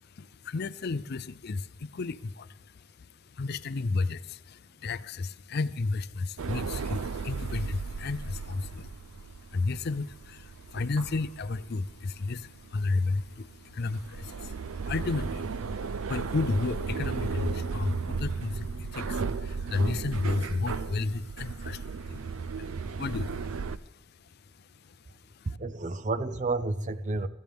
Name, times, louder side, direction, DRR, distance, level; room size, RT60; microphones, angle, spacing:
voice 1, 0.0-25.5, left 3 dB, 50° left, 0.5 m, -33 dB
sound 1, 6.4-23.8, right 5 dB, 75° right, 0.5 m, -35 dB
voice 2, 25.4-27.3, right 3 dB, 35° right, 0.6 m, -30 dB
24.0 x 14.5 x 3.5 m
head